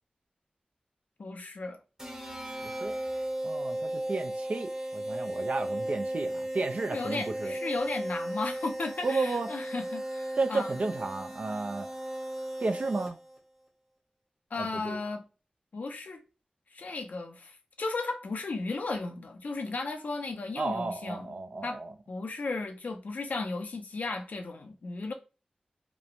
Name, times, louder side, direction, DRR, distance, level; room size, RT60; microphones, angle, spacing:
voice 1, 1.2-1.8 6.9-10.7 14.5-15.2 15.7-16.2 16.7-21.3 21.6-21.8 22.1-25.1, left 3 dB, 80° left, 0.5 m, -35 dB
sound 1, 2.0-13.4, right 1 dB, 20° right, 0.8 m, -36 dB
voice 2, 2.6-2.9 3.4-7.6 9.0-9.5 10.4-11.9 12.6-13.2 14.6-15.0 20.6-21.9, right 3 dB, 55° right, 0.3 m, -32 dB
3.0 x 2.0 x 2.4 m
wide cardioid pair, 55°, 3 cm